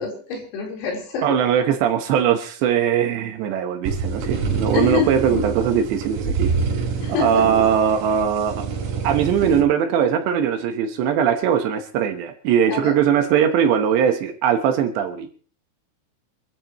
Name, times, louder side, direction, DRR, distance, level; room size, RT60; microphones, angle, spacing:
voice 1, 0.0-1.4 4.7-5.2 7.0-7.6 12.7-12.9, left 6 dB, 90° left, -1 dB, 6.8 m, -26 dB
voice 2, 1.2-6.5 7.2-8.7 9.0-15.3, right 8 dB, 70° right, 6 dB, 3.0 m, -20 dB
sound 1, 3.8-9.6, right 5 dB, 90° right, 5.8 m, -26 dB
26.5 x 13.0 x 3.1 m, 0.41 s
omnidirectional pair, 5.9 m